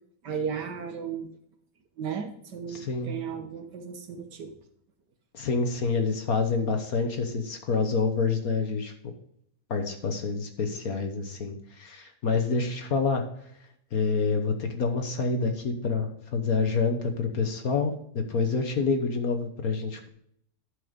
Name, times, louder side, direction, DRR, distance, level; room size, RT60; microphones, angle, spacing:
voice 1, 0.2-1.3 2.0-4.5, right 7 dB, 60° right, 5 dB, 1.7 m, -35 dB
voice 2, 2.7-3.1 5.3-8.9 9.7-13.2 13.9-20.1, left 4 dB, 50° left, 5 dB, 1.4 m, -27 dB
11.5 x 4.9 x 5.1 m, 0.68 s
omnidirectional pair, 2.1 m